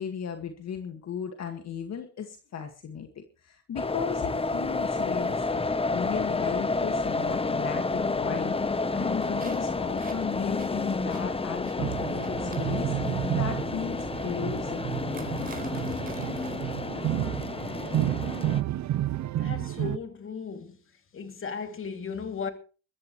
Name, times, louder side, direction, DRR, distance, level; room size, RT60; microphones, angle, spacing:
voice 1, 0.0-5.6 5.9-15.7, left 7 dB, 60° left, 2.1 m, -36 dB
sound 1, 3.8-18.6, left 3 dB, 20° left, 1.0 m, -30 dB
sound 2, 9.2-16.6, right 4 dB, 30° right, 4.4 m, -49 dB
sound 3, 11.8-20.0, right 12 dB, 65° right, 0.7 m, -31 dB
voice 2, 19.4-20.8 21.1-22.5, left 6 dB, 45° left, 2.9 m, -36 dB
22.0 x 13.5 x 3.2 m
cardioid pair, 90°, 30 cm